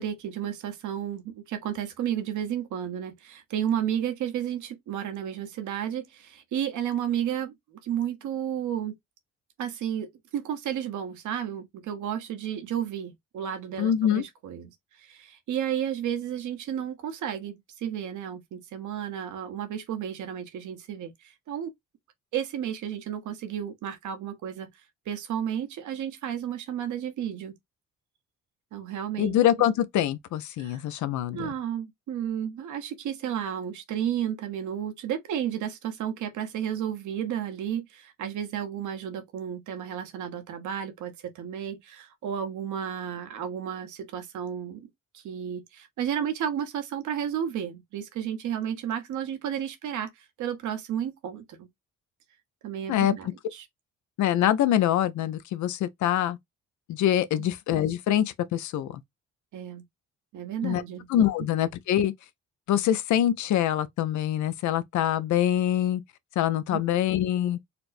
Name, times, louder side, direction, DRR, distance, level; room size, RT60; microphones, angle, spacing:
voice 1, 0.0-7.5 7.8-9.0 9.6-10.1 10.3-21.7 22.3-24.7 25.1-27.5 28.7-29.4 30.6-30.8 31.3-44.9 45.1-51.7 52.6-53.7 57.4-57.5 59.5-59.8 60.3-61.1 66.7-66.8, right 9 dB, 75° right, 0.9 m, -32 dB
voice 2, 13.8-14.2 29.2-31.5 52.9-53.1 54.2-56.4 56.9-59.0 60.6-60.8 61.1-62.1 62.7-66.0 66.4-67.6, left 11 dB, 70° left, 0.5 m, -24 dB
4.3 x 2.0 x 2.5 m
cardioid pair, 90°, 30 cm